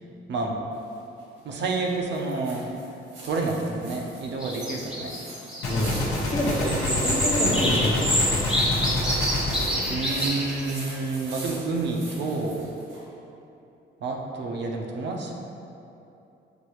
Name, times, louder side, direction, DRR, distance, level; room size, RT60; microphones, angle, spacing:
voice 1, 0.3-0.6 1.4-2.7 3.2-5.2 6.6-6.8 9.9-12.7 14.0-15.3, right 3 dB, 60° right, 0 dB, 0.6 m, -29 dB
sound 1, 0.7-13.0, right 2 dB, 80° right, 1.4 m, -44 dB
sound 2, 4.4-5.8 6.7-10.8, equal, 5° right, 0.7 m, -27 dB
Gunshot gunfire, 5.6-10.8, left 1 dB, 85° left, 1.0 m, -28 dB
voice 2, 5.7-8.4, left 1 dB, 30° left, -2 dB, 0.7 m, -28 dB
5.9 x 2.7 x 3.0 m, 2.8 s
cardioid pair, 90°, 20 cm